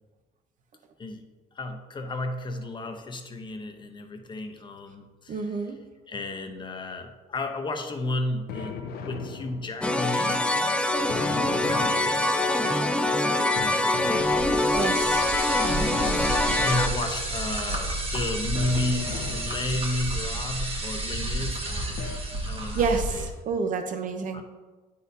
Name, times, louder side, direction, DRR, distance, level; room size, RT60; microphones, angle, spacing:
voice 1, 1.5-5.7 6.1-11.0 11.3-12.6 13.2-14.5 14.8-15.4 16.5-22.0 22.3-23.3 24.3-24.4, left 2 dB, 30° left, 5 dB, 0.7 m, -33 dB
voice 2, 5.3-5.8 14.7-15.3 22.7-24.4, right 5 dB, 50° right, 6 dB, 0.7 m, -29 dB
sound 1, 8.5-10.1 11.1-12.6 13.6-14.9 15.9-17.3 18.5-20.1 22.0-22.2, left 5 dB, 65° left, 0.6 m, -38 dB
sound 2, 9.8-16.9, left 2 dB, 5° left, 0.4 m, -24 dB
sound 3, 14.2-23.3, right 1 dB, 35° right, 1.2 m, -31 dB
9.4 x 4.2 x 2.6 m, 1.3 s
cardioid pair, 110°, 17 cm